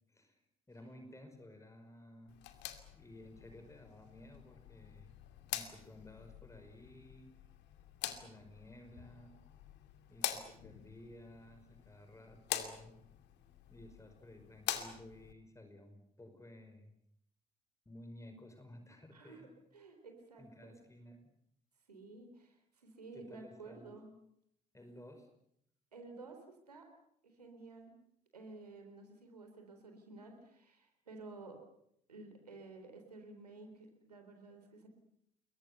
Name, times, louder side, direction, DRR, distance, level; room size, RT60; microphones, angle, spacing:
voice 1, 0.1-0.4 0.7-2.4 2.9-5.1 5.5-7.3 8.0-9.4 10.1-13.0 13.7-16.9 17.9-19.5 20.4-21.3 23.1-24.0 24.7-25.3, left 1 dB, 15° left, 7 dB, 5.3 m, -55 dB
sound 1, 2.3-15.3, left 12 dB, 60° left, 2.5 m, -45 dB
voice 2, 19.1-19.5 19.7-20.7 21.9-24.1 25.9-26.9 27.2-27.9 28.3-31.6 32.1-34.9, right 3 dB, 90° right, 5 dB, 3.9 m, -53 dB
28.5 x 22.5 x 6.9 m, 0.71 s
figure-of-eight pair, 55°, 20 cm